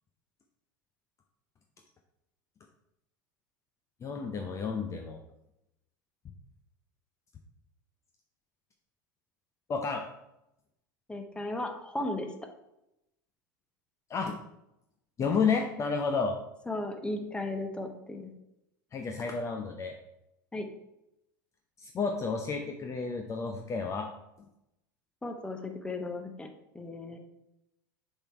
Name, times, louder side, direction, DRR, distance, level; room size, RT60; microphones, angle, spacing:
voice 1, 4.0-5.2 9.7-10.0 14.1-14.4 15.2-16.3 18.9-19.9 21.8-24.1, left 5 dB, 30° left, 4 dB, 0.7 m, -31 dB
voice 2, 11.1-12.3 16.7-18.3 20.5-20.7 25.2-26.5 26.7-27.2, left 2 dB, 10° left, 5 dB, 1.0 m, -35 dB
6.9 x 3.7 x 4.5 m, 0.86 s
figure-of-eight pair, 80°, 11 cm